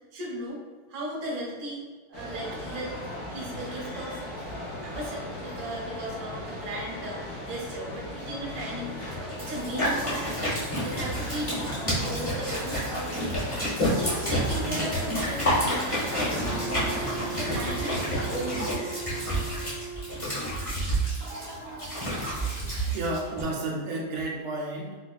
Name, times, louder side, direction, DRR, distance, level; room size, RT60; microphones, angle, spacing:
voice 1, 0.1-4.2 4.8-9.1 9.4-13.5 13.9-19.1, right 1 dB, 55° right, -4 dB, 1.0 m, -37 dB
sound 1, 2.1-18.6, left 1 dB, 85° left, 1.9 m, -38 dB
sound 2, 9.1-23.4, equal, 25° left, 0.8 m, -29 dB
Wind instrument woodwind instrument, 16.2-20.5, right 6 dB, 55° left, 1.1 m, -39 dB
voice 2, 21.2-25.0, right 2 dB, 80° right, -2 dB, 1.5 m, -34 dB
4.5 x 2.3 x 2.4 m, 1.4 s
omnidirectional pair, 2.4 m